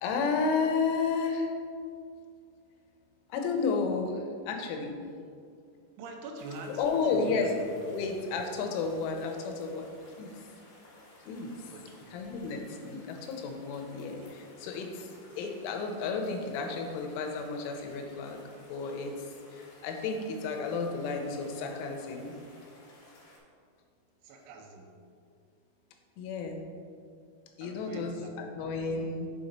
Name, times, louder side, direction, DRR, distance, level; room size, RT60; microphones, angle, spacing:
voice 1, 0.0-1.5 3.3-5.0 6.8-7.5 7.8-9.9 10.2-10.4 11.3-11.6 12.1-22.3 26.2-26.7 27.6-29.3, left 4 dB, 85° left, 3 dB, 3.3 m, -32 dB
voice 2, 6.0-8.0 11.7-12.0 14.2-14.3 24.2-24.9 27.6-28.3 28.9-29.1, right 2 dB, 80° right, 1 dB, 3.1 m, -43 dB
sound 1, 6.4-23.4, left 1 dB, 65° left, 3.0 m, -56 dB
7.5 x 4.2 x 5.1 m, 2.3 s
omnidirectional pair, 5.5 m